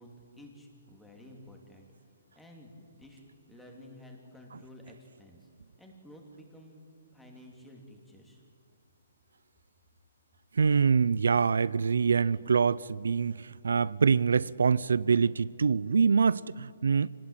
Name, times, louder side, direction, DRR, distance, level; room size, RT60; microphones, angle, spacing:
voice 1, 0.0-1.9 2.3-5.5 5.8-6.8 7.1-8.4, left 1 dB, 5° left, 2.7 m, -52 dB
voice 2, 10.6-17.1, right 5 dB, 90° right, 0.5 m, -25 dB
26.0 x 19.0 x 8.8 m
hypercardioid pair, 170°, 0 cm